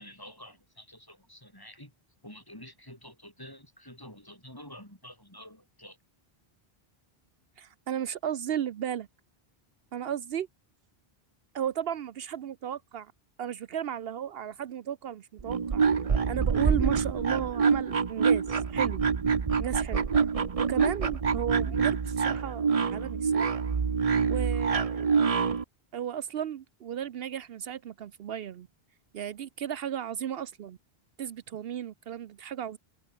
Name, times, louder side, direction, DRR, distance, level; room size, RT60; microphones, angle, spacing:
voice 1, 0.0-1.9 2.2-6.0, left 1 dB, 20° left, 5.7 m, -48 dB
voice 2, 7.6-9.1 9.9-10.5 11.5-13.1 13.4-15.8 16.3-19.0 19.6-20.3 20.6-23.5 24.3-25.0 25.9-28.7 29.1-30.8 31.2-32.8, right 9 dB, 75° right, 0.9 m, -34 dB
sound 1, 15.4-25.6, right 5 dB, 35° right, 0.8 m, -26 dB
open air
omnidirectional pair, 1.0 m